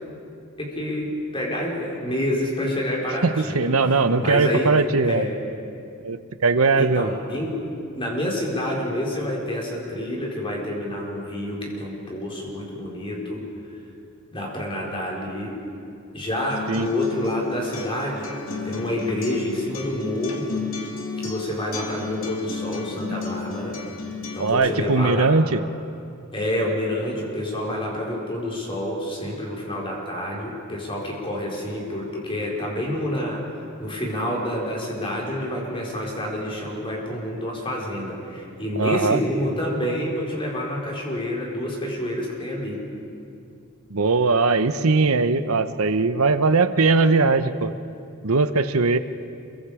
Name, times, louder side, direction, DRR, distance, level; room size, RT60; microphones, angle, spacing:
voice 1, 0.6-4.7 5.0-5.4 6.8-7.5 7.9-13.4 14.3-15.6 16.1-18.3 18.6-20.5 21.2-23.8 24.3-25.3 26.3-33.4 33.8-42.8, left 1 dB, 25° left, -3 dB, 4.6 m, -28 dB
voice 2, 3.2-5.3 6.0-7.1 16.7-16.9 23.1-23.2 24.4-25.6 38.8-39.2 43.9-47.7 48.2-49.0, right 3 dB, 85° right, 11 dB, 0.9 m, -20 dB
Acoustic guitar, 16.5-24.5, left 4 dB, 70° left, 2.9 m, -33 dB
27.0 x 23.5 x 5.0 m, 2.5 s
head